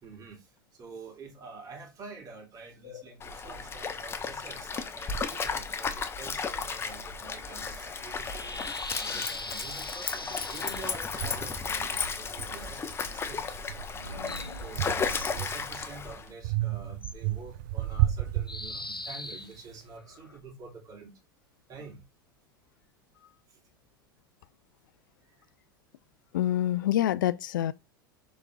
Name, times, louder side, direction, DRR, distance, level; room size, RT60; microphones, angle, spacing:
voice 1, 0.0-13.6 14.0-21.1 21.7-22.0 23.5-23.6, right 4 dB, 30° right, 2.9 m, -47 dB
Stream, 3.2-16.3, left 5 dB, 20° left, 1.1 m, -34 dB
sound 1, 6.7-11.2 14.0-15.4 17.0-17.1 18.5-20.4, left 2 dB, 90° left, 0.9 m, -42 dB
sound 2, 10.4-10.5 11.2-13.1 13.5-15.9 16.4-19.2, right 14 dB, 50° right, 0.6 m, -33 dB
voice 2, 26.3-27.7, left 12 dB, 60° left, 0.4 m, -27 dB
6.8 x 4.2 x 3.6 m
figure-of-eight pair, 80°, 12 cm